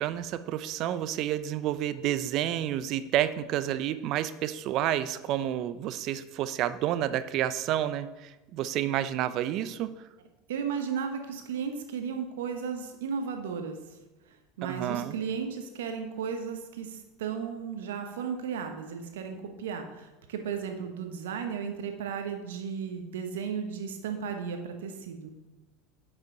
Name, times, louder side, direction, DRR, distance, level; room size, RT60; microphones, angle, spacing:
voice 1, 0.0-10.0 14.6-15.2, right 11 dB, 55° right, 13 dB, 0.5 m, -30 dB
voice 2, 10.5-13.8 14.6-25.3, right 6 dB, 80° right, 5 dB, 1.1 m, -34 dB
9.5 x 5.6 x 3.9 m, 1.1 s
hypercardioid pair, 85°, 0 cm